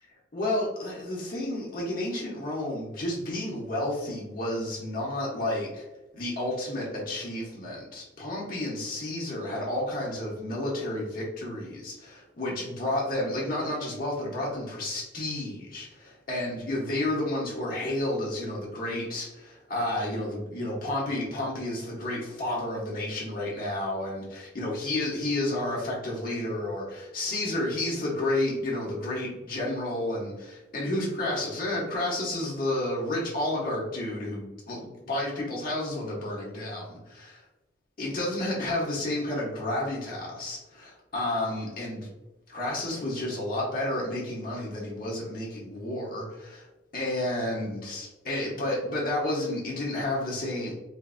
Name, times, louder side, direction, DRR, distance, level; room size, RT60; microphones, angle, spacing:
voice 1, 0.3-5.8 6.1-37.4 38.0-42.1 42.5-46.7 46.9-50.7, left 1 dB, 50° left, -5 dB, 1.0 m, -31 dB
4.4 x 2.6 x 2.5 m, 1.0 s
head